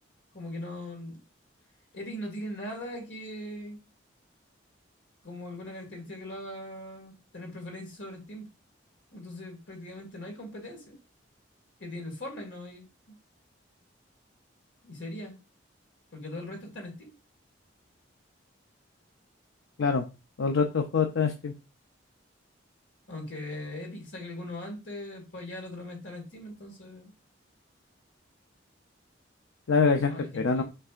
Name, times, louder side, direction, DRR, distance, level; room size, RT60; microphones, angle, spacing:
voice 1, 0.3-1.2 1.9-3.8 5.2-8.5 9.1-11.0 11.8-13.2 14.8-15.4 16.1-17.1 23.1-27.1 30.0-30.6, left 1 dB, 70° left, 2.0 m, -40 dB
voice 2, 20.4-21.5 29.7-30.6, left 5 dB, 90° left, 0.5 m, -25 dB
6.5 x 3.3 x 2.4 m
head